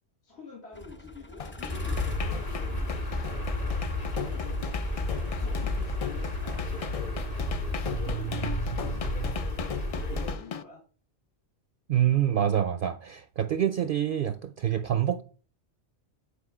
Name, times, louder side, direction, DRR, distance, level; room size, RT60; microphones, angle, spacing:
voice 1, 0.2-9.5 9.9-10.8, left 4 dB, 65° left, 2.3 m, -48 dB
sound 1, 0.7-6.9, right 1 dB, 10° left, 0.6 m, -45 dB
sound 2, 1.4-10.6, left 7 dB, 50° left, 0.4 m, -38 dB
sound 3, 1.7-10.3, left 1 dB, 35° left, 1.4 m, -31 dB
voice 2, 11.9-15.2, right 10 dB, 60° right, 0.6 m, -26 dB
10.0 x 5.1 x 4.9 m
omnidirectional pair, 1.2 m